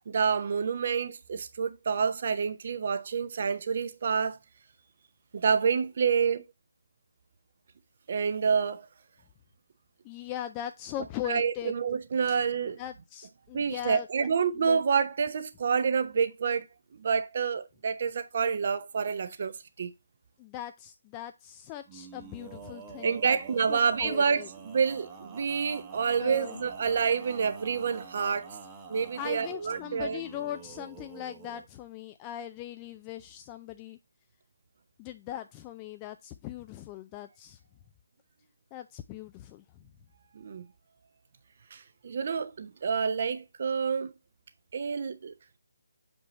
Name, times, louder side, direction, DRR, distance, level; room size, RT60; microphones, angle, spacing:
voice 1, 0.1-4.4 5.3-6.4 8.1-8.9 11.3-12.8 13.5-16.7 17.0-19.5 19.8-19.9 23.0-28.5 28.9-30.2 40.3-40.7 41.7-44.1 44.7-45.3, right 6 dB, 45° right, 0.7 m, -28 dB
voice 2, 10.0-11.7 12.8-14.3 14.5-14.8 20.4-23.4 23.7-24.5 26.2-26.7 29.2-34.0 35.0-37.6 38.7-39.6, left 12 dB, 20° left, 0.3 m, -40 dB
Male singing, 21.9-31.7, right 5 dB, 15° right, 1.0 m, -47 dB
6.8 x 5.3 x 3.0 m
figure-of-eight pair, 145°, 0 cm